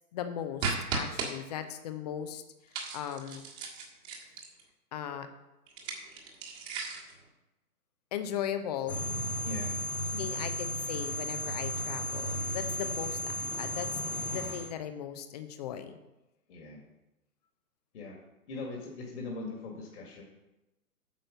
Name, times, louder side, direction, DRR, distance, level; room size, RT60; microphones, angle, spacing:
voice 1, 0.1-2.4 2.9-3.4 4.9-5.3 8.1-9.0 10.2-13.9 14.3-16.0, left 9 dB, 25° left, 9 dB, 0.7 m, -37 dB
sound 1, 0.6-1.3 2.7-4.6 5.7-7.1, right 4 dB, 25° right, 1.7 m, -35 dB
sound 2, 8.9-14.7, left 1 dB, 70° left, 1.6 m, -34 dB
voice 2, 9.4-9.8 10.1-10.3 16.5-16.8 17.9-18.2 18.5-20.2, left 3 dB, 45° left, -1 dB, 2.1 m, -40 dB
9.2 x 6.5 x 5.4 m, 0.98 s
figure-of-eight pair, 130°, 46 cm